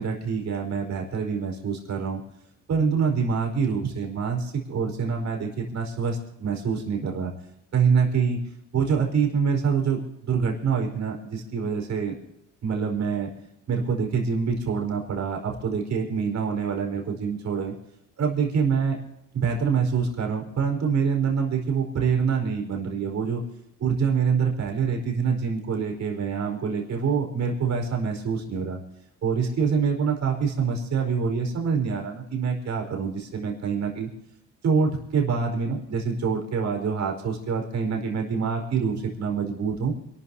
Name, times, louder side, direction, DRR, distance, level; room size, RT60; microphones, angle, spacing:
voice 1, 0.0-2.2 2.7-7.3 7.7-8.4 8.7-12.1 12.6-13.3 13.7-17.8 18.2-19.0 19.3-23.4 23.8-28.8 29.2-34.1 34.6-39.9, right 6 dB, 65° right, 1 dB, 4.9 m, -25 dB
28.5 x 13.5 x 2.9 m, 0.83 s
cardioid pair, 90°, 30 cm